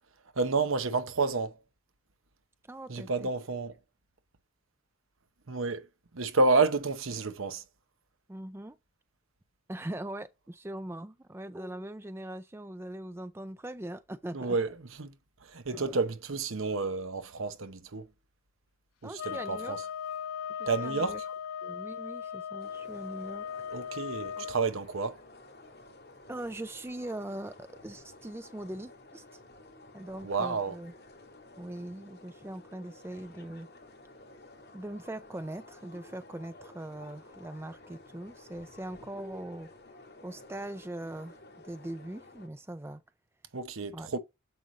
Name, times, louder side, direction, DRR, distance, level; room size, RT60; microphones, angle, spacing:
voice 1, 0.3-1.6 2.9-3.8 5.5-5.9 6.1-7.6 14.3-15.1 15.4-18.1 19.0-19.8 20.7-21.2 23.7-25.2 30.2-30.8 43.5-44.2, right 3 dB, 70° right, 0.9 m, -30 dB
voice 2, 2.7-3.3 8.3-8.8 9.7-14.6 15.7-16.0 19.0-19.7 20.5-21.2 21.6-23.5 24.4-24.5 26.3-29.4 29.9-30.9 31.6-33.7 34.7-39.7 40.2-41.4 41.6-43.0 43.9-44.1, right 1 dB, 10° right, 0.4 m, -41 dB
sound 1, 19.2-24.6, left 8 dB, 85° left, 0.5 m, -38 dB
sound 2, 22.6-42.5, left 2 dB, 50° left, 2.5 m, -53 dB
7.8 x 5.2 x 3.2 m
head